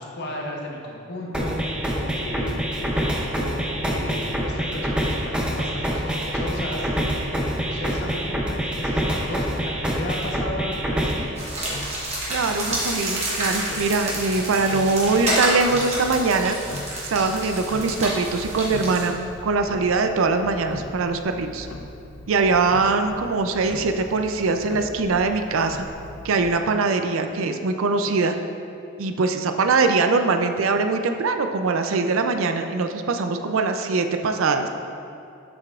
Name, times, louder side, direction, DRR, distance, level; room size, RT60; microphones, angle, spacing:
voice 1, 0.0-11.3, left 1 dB, 55° left, -2 dB, 1.0 m, -34 dB
sound 1, 1.3-11.3, equal, 5° right, 0.6 m, -26 dB
Tick-tock, 11.3-26.6, left 1 dB, 75° left, 0.6 m, -40 dB
sound 2, 11.4-19.1, right 1 dB, 30° right, 1.4 m, -29 dB
voice 2, 12.3-16.6 17.1-19.2 19.4-21.7 22.3-25.8 26.2-28.3 29.0-34.7, right 3 dB, 75° right, 6 dB, 0.4 m, -22 dB
7.6 x 6.7 x 2.4 m, 2.6 s
head